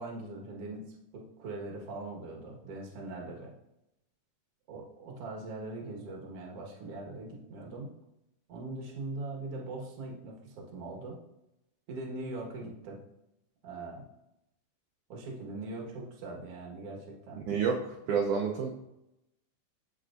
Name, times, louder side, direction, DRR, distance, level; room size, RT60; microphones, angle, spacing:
voice 1, 0.0-3.5 4.7-7.9 8.5-11.2 11.9-13.0 13.6-14.0 15.1-17.5, right 2 dB, 55° right, -1 dB, 2.1 m, -41 dB
voice 2, 17.5-18.7, right 6 dB, 75° right, 0 dB, 2.0 m, -29 dB
13.5 x 4.7 x 2.5 m, 0.86 s
omnidirectional pair, 4.0 m